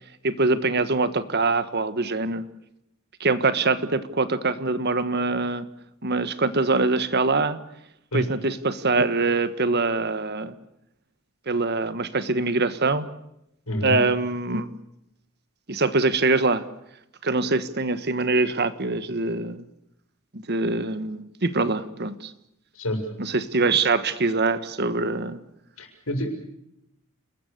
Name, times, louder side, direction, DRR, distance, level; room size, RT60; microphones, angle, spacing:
voice 1, 0.2-2.4 3.2-5.6 6.0-7.6 8.1-10.6 11.5-13.1 13.8-14.7 15.7-16.6 17.2-19.7 20.3-22.3 23.2-25.4, right 3 dB, 50° right, 13 dB, 1.5 m, -24 dB
voice 2, 25.8-26.3, left 1 dB, 70° left, 4 dB, 7.0 m, -27 dB
29.5 x 21.0 x 6.8 m, 0.80 s
head